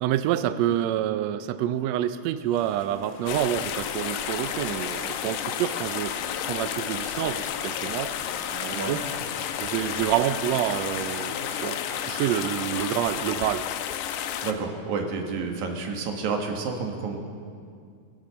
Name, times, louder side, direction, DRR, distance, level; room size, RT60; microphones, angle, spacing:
voice 1, 0.0-6.1 6.5-8.1 8.5-9.0 9.6-11.8 12.1-13.7, right 11 dB, 85° right, 12 dB, 1.5 m, -27 dB
sound 1, 2.4-13.2, left 2 dB, 35° left, 1.8 m, -44 dB
sound 2, 3.3-14.5, left 10 dB, 85° left, 2.2 m, -32 dB
sound 3, 5.2-13.2, left 2 dB, 60° left, 4.8 m, -47 dB
voice 2, 14.4-17.2, right 4 dB, 70° right, 2 dB, 2.8 m, -30 dB
21.0 x 11.5 x 5.7 m, 2.3 s
omnidirectional pair, 3.7 m